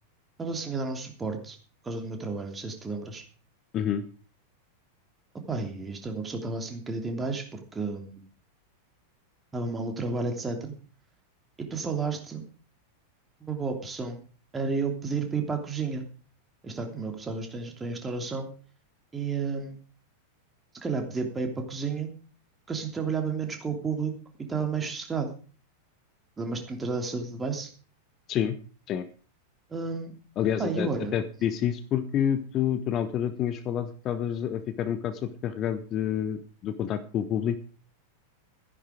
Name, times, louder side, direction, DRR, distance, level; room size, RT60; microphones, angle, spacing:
voice 1, 0.4-1.6 1.8-3.2 5.5-8.2 9.5-10.7 11.6-12.5 13.4-14.2 14.5-16.1 16.6-18.5 19.1-19.8 20.7-22.1 22.7-24.1 24.5-25.3 26.4-27.7 29.7-30.1 30.6-31.1, right 4 dB, 15° right, 4 dB, 3.0 m, -31 dB
voice 2, 30.4-37.6, left 9 dB, 35° left, 12 dB, 1.1 m, -28 dB
14.0 x 10.5 x 5.1 m, 0.39 s
figure-of-eight pair, 90°, 0 cm